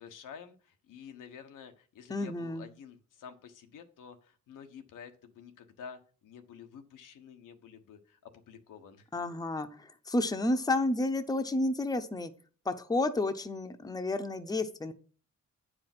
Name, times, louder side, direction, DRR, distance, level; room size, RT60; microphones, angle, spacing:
voice 1, 0.0-9.1, left 7 dB, 90° left, 6 dB, 1.2 m, -50 dB
voice 2, 2.1-2.6 9.1-12.3 12.7-14.9, left 2 dB, 10° left, 9 dB, 0.8 m, -31 dB
8.9 x 4.9 x 5.9 m, 0.41 s
cardioid pair, 90°, 31 cm